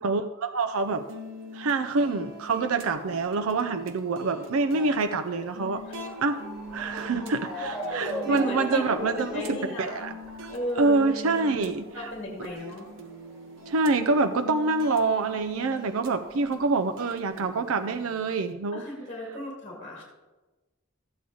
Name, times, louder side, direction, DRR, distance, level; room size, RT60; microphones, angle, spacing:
voice 1, 0.0-1.1 1.5-5.8 6.2-6.4 6.7-10.1 10.8-12.1 13.7-18.8, right 3 dB, 85° right, 7 dB, 0.5 m, -26 dB
sound 1, 0.7-18.5, equal, 65° right, 1.2 m, -44 dB
Motor vehicle (road) / Siren, 2.0-15.1 15.3-16.5 17.1-17.2 17.5-17.6, equal, 5° right, 2.4 m, -40 dB
voice 2, 8.2-10.2 10.5-11.0 11.3-11.5 11.9-12.9 18.7-20.0, left 1 dB, 30° left, -2 dB, 2.3 m, -35 dB
14.0 x 8.4 x 3.8 m, 1.2 s
head